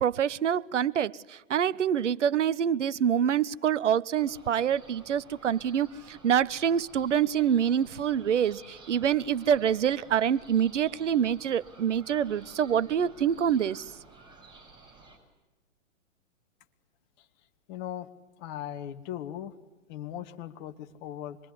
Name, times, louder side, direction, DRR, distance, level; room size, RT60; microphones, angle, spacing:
voice 1, 0.0-13.8, right 9 dB, 65° right, 0.9 m, -26 dB
sound 1, 4.2-15.2, right 3 dB, 10° right, 6.4 m, -53 dB
voice 2, 17.7-18.1 18.4-19.5 19.9-21.4, left 11 dB, 35° left, 2.0 m, -38 dB
26.0 x 23.0 x 9.9 m
figure-of-eight pair, 120°, 39 cm